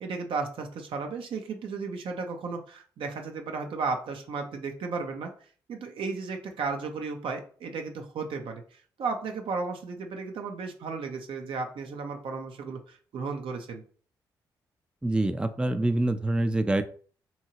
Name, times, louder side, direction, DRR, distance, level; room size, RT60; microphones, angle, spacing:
voice 1, 0.0-5.3 5.7-13.8, right 4 dB, 65° right, 3 dB, 0.6 m, -34 dB
voice 2, 15.0-16.8, right 1 dB, 10° right, 10 dB, 0.4 m, -25 dB
2.8 x 2.7 x 2.7 m, 0.43 s
hypercardioid pair, 45°, 9 cm